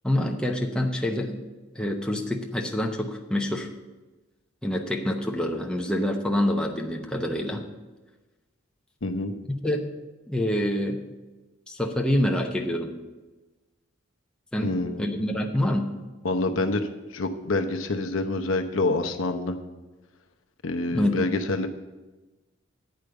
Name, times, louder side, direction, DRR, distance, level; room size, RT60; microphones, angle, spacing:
voice 1, 0.0-1.4 1.7-3.7 4.6-7.6 9.6-9.8 10.3-11.0 11.7-13.0 14.5-15.9 20.9-21.2, left 1 dB, 5° left, 1 dB, 0.8 m, -26 dB
voice 2, 9.0-9.3 14.6-15.1 16.2-16.9 17.1-19.6 20.6-21.7, left 2 dB, 70° left, 5 dB, 0.8 m, -27 dB
9.3 x 5.1 x 7.9 m, 1.2 s
head